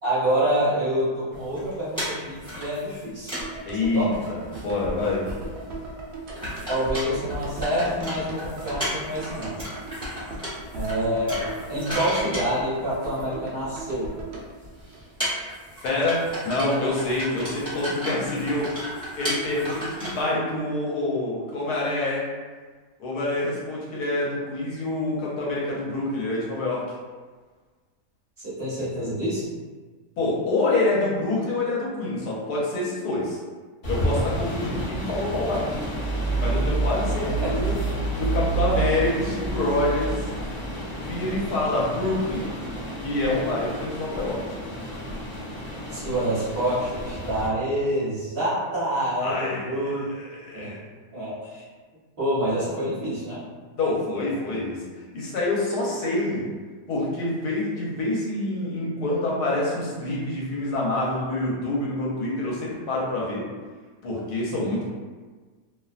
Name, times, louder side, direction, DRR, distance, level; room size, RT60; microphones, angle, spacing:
voice 1, 0.0-3.3 3.9-4.2 6.7-9.5 10.7-11.4 11.7-14.1 28.4-29.5 37.4-37.5 45.9-50.0 50.5-50.8 51.1-51.6 52.2-53.4, right 1 dB, 45° right, -11 dB, 0.9 m, -27 dB
sound 1, 1.3-3.6 3.9-4.0 4.1-4.3 4.5-5.6 5.9-6.0 6.3-13.5 14.3-14.4 14.6-20.2, equal, 5° left, 0.6 m, -34 dB
sound 2, 3.4-15.6 15.8-15.9, right 1 dB, 90° right, 0.5 m, -38 dB
voice 2, 3.7-5.3 15.8-18.7 19.2-22.3 23.0-26.8 30.2-33.4 33.9-35.8 36.4-37.7 38.2-40.3 41.0-42.5 43.0-44.4 49.2-50.8 53.8-56.5 56.9-63.5 64.0-64.8, left 2 dB, 80° left, -5 dB, 1.2 m, -26 dB
sound 3, 33.8-47.5, right 2 dB, 35° left, 0.9 m, -29 dB
2.7 x 2.1 x 2.4 m, 1.4 s
omnidirectional pair, 1.7 m